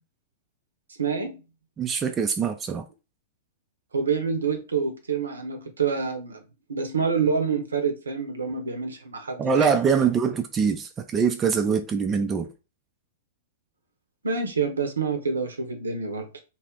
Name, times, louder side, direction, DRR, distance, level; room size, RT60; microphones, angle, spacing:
voice 1, 1.0-1.4 3.9-6.4 6.7-9.8 14.2-16.4, right 5 dB, 80° right, 0.7 m, -27 dB
voice 2, 1.8-2.8 9.4-12.5, right 6 dB, 20° right, 0.4 m, -23 dB
2.4 x 2.1 x 3.5 m
figure-of-eight pair, 100°, 0 cm